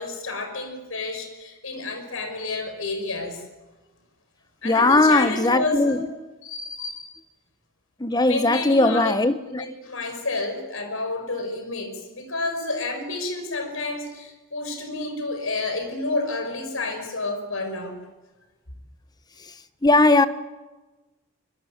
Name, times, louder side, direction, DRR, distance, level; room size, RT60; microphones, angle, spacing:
voice 1, 0.0-3.4 4.6-6.1 6.4-7.0 8.2-9.1 9.5-18.0, left 2 dB, 75° left, 5.8 m, -30 dB
voice 2, 4.6-6.1 8.0-9.6 19.8-20.3, left 2 dB, 20° left, 1.0 m, -19 dB
25.0 x 22.0 x 9.0 m
head